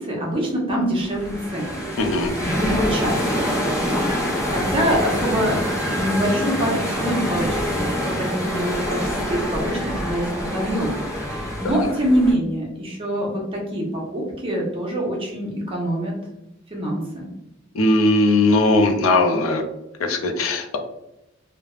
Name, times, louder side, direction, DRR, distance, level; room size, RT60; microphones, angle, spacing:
voice 1, 0.0-1.8 2.1-5.6 5.9-11.0 11.3-16.1 16.7-17.3, equal, 25° right, -2 dB, 0.8 m, -25 dB
sound 1, 1.0-12.3, equal, 15° left, 0.7 m, -25 dB
voice 2, 2.0-2.3 11.6-11.8 17.7-19.6 20.0-20.8, left 2 dB, 85° left, 6 dB, 0.4 m, -19 dB
3.1 x 2.0 x 2.3 m, 0.92 s
head